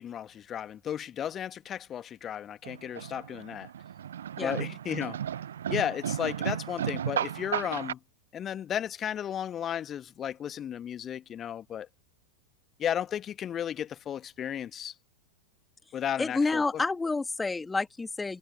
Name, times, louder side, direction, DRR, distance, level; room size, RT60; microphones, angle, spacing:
voice 1, 0.0-3.7 4.4-5.2 5.7-8.0 8.3-11.9 12.8-14.9 15.9-16.6, left 9 dB, 25° left, 1.5 m, -34 dB
sound 1, 2.6-7.9, right 9 dB, 65° right, 0.6 m, -34 dB
voice 2, 16.2-18.4, left 3 dB, 10° left, 2.7 m, -29 dB
figure-of-eight pair, 90°, 0 cm